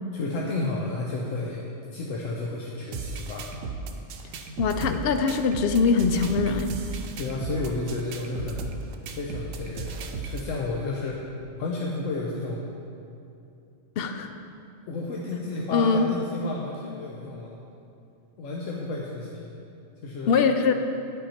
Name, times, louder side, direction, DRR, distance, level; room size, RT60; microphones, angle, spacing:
voice 1, 0.1-3.5 7.2-8.7 9.1-11.3 11.6-12.6 14.9-17.6 18.4-19.5 20.0-20.4, left 2 dB, 85° left, -3 dB, 1.1 m, -32 dB
sound 1, 2.9-10.5, right 4 dB, 90° right, 1.0 m, -35 dB
voice 2, 4.6-6.7 14.0-14.3 15.7-16.1 20.3-20.7, left 5 dB, 60° left, 7 dB, 0.7 m, -22 dB
9.6 x 5.5 x 4.3 m, 2.5 s
omnidirectional pair, 1.3 m